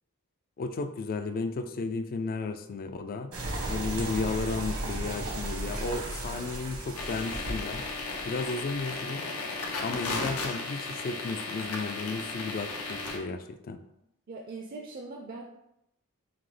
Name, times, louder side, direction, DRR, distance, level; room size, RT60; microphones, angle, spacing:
voice 1, 0.6-3.3 3.7-7.9 8.2-9.3 9.8-13.8, left 3 dB, 40° left, 8 dB, 0.3 m, -34 dB
sound 1, 3.3-8.8, right 1 dB, 85° right, 1.1 m, -35 dB
sound 2, 6.9-13.2, left 3 dB, 85° left, 0.6 m, -35 dB
voice 2, 14.3-15.4, right 3 dB, 40° right, 0 dB, 0.4 m, -41 dB
5.7 x 2.0 x 3.2 m, 0.82 s
head